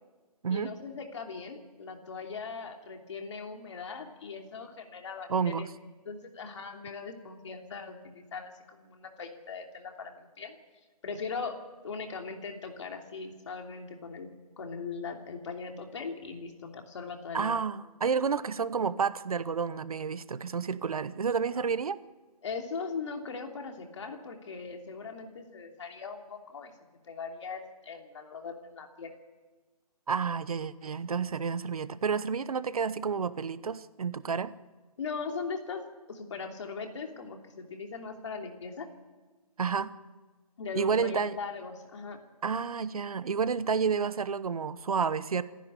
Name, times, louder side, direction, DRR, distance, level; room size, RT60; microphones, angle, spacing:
voice 1, 0.5-5.7 6.1-10.6 11.0-14.3 14.6-17.6 22.4-29.1 35.0-35.8 36.1-38.9 40.6-42.2, left 5 dB, 45° left, 3 dB, 3.0 m, -39 dB
voice 2, 5.3-5.7 17.3-22.0 30.1-34.5 39.6-39.9 40.7-41.4 42.4-45.4, right 6 dB, 60° right, 15 dB, 1.0 m, -30 dB
28.5 x 10.5 x 9.9 m, 1.3 s
hypercardioid pair, 165°, 21 cm